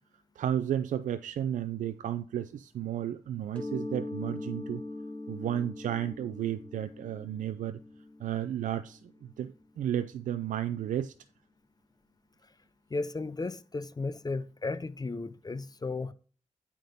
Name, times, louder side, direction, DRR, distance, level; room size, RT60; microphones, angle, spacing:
voice 1, 0.4-4.8 5.3-7.8 8.2-9.0 9.4-11.1, right 10 dB, 85° right, 0.4 m, -33 dB
Mallet percussion, 3.5-9.1, left 2 dB, 10° left, 2.1 m, -41 dB
voice 2, 12.9-16.1, left 3 dB, 30° left, 0.7 m, -34 dB
9.1 x 3.7 x 5.6 m
cardioid pair, 60°, 13 cm